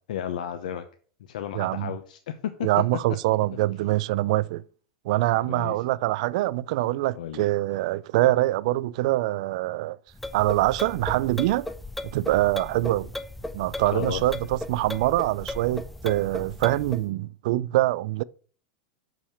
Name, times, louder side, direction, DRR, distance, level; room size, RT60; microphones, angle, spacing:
voice 1, 0.1-0.8 1.2-2.5 5.3-5.8 7.1-7.4 13.9-14.2, left 9 dB, 90° left, 0.8 m, -33 dB
voice 2, 1.5-1.9 2.6-4.6 5.1-10.0 10.3-11.7 12.1-13.1 13.5-18.2, right 17 dB, 60° right, 0.4 m, -24 dB
sound 1, 10.1-17.0, left 1 dB, 5° left, 0.5 m, -36 dB
6.4 x 5.9 x 7.1 m
supercardioid pair, 155°, 4 cm